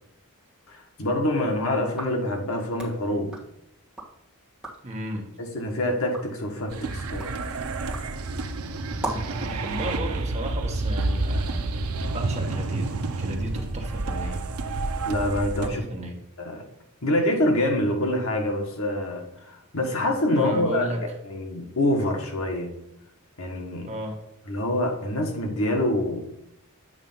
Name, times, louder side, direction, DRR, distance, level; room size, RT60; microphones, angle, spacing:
voice 1, 0.7-3.3 5.4-7.3 15.1-15.8 16.4-16.6 17.0-20.9 21.2-22.7 23.4-23.9 24.5-26.2, left 1 dB, 70° left, 2 dB, 1.4 m, -26 dB
sound 1, 1.8-4.2 4.5-5.0 5.4-9.4, right 2 dB, 5° right, 1.6 m, -40 dB
voice 2, 4.8-5.3 9.0-11.8 12.1-14.4 15.6-16.2 20.3-21.0 23.9-24.2, right 1 dB, 30° right, 1 dB, 1.2 m, -34 dB
sound 2, 6.7-15.7, right 2 dB, 70° right, 0.6 m, -29 dB
8.0 x 3.3 x 5.5 m, 0.80 s
head